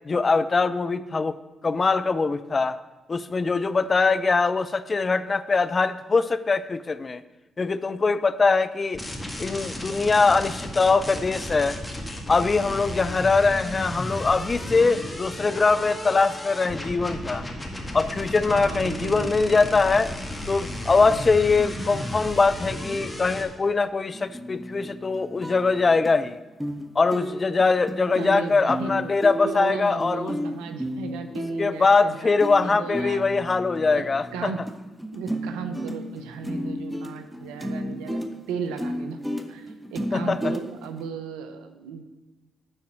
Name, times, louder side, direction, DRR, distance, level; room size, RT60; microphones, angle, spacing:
voice 1, 0.1-1.3 1.6-2.8 3.1-7.2 7.6-9.0 9.4-11.8 12.3-17.4 17.9-20.1 20.5-26.4 27.0-30.4 31.6-34.5 40.1-40.5, left 4 dB, 40° left, 14 dB, 0.4 m, -22 dB
sound 1, 8.9-23.4, left 1 dB, 15° left, 1.8 m, -34 dB
voice 2, 18.5-19.7 28.2-28.9 29.4-33.3 33.9-34.0 34.3-34.6 35.1-42.0, right 6 dB, 80° right, 8 dB, 0.6 m, -36 dB
sound 2, 24.1-26.2 26.6-26.9 27.1-34.7 35.0-41.1, equal, 5° right, 1.0 m, -33 dB
9.8 x 4.2 x 6.2 m, 1.1 s
hypercardioid pair, 45°, 0 cm